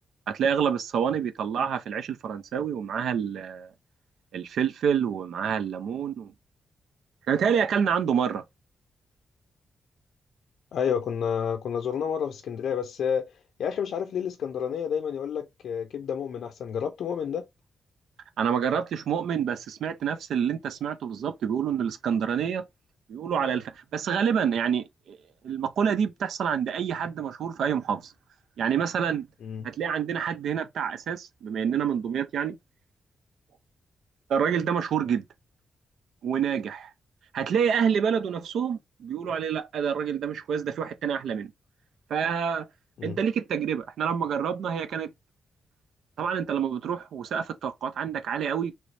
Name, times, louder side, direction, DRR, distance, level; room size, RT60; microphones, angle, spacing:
voice 1, 0.3-3.7 4.3-6.3 7.3-8.4 18.4-22.6 23.1-25.2 25.4-28.1 28.6-29.3 29.6-32.6 34.3-35.3 36.2-36.9 37.3-41.5 42.1-42.7 43.0-45.1 46.2-48.7, right 7 dB, 90° right, 0.4 m, -27 dB
voice 2, 10.7-13.3 13.6-17.5 29.4-29.7 43.0-43.2, left 7 dB, 75° left, 0.4 m, -30 dB
3.2 x 3.1 x 2.6 m
wide cardioid pair, 165°, 0 cm